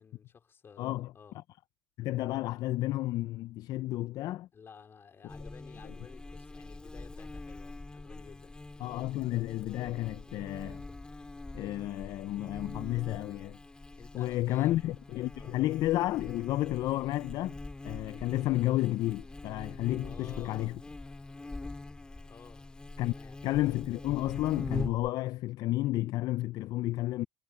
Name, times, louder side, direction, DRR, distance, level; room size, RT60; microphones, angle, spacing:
voice 1, 0.0-1.4 4.5-8.6 13.9-14.7 15.4-15.5 20.0-20.8 22.3-22.7 23.1-23.4, left 6 dB, 30° left, 3.8 m, -53 dB
voice 2, 0.8-1.1 2.0-4.5 5.8-5.9 8.8-10.8 11.5-13.6 14.1-17.6 17.8-20.8 23.0-23.1 23.4-27.3, left 16 dB, 55° left, 0.4 m, -31 dB
Buzz, 5.3-25.1, left 2 dB, 10° left, 2.1 m, -43 dB
cardioid pair, 120°, 8 cm